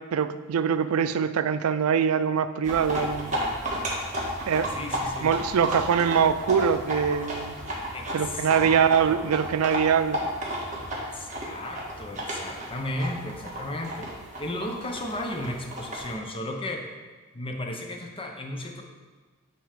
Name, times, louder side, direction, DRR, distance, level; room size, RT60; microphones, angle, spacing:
voice 1, 0.0-3.3 4.5-4.7 5.2-7.5 8.1-10.2, right 7 dB, 90° right, 12 dB, 0.4 m, -23 dB
sound 1, 2.6-16.1, equal, 35° right, 1.4 m, -33 dB
voice 2, 4.7-5.3 7.9-9.3 10.9-16.9 17.3-18.8, left 1 dB, 25° left, 2 dB, 0.8 m, -35 dB
8.8 x 3.0 x 5.0 m, 1.4 s
head